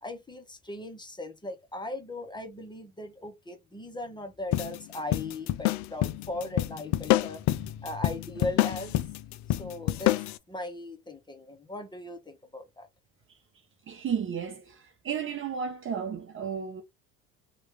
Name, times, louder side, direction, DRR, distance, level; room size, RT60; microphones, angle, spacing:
voice 1, 0.0-9.0 9.5-10.1 10.5-12.9, left 2 dB, 10° left, 0.9 m, -38 dB
sound 1, 4.5-10.4, left 15 dB, 55° left, 0.4 m, -28 dB
voice 2, 13.9-16.8, right 7 dB, 35° right, 0.7 m, -33 dB
2.9 x 2.4 x 3.3 m
hypercardioid pair, 75°, 37 cm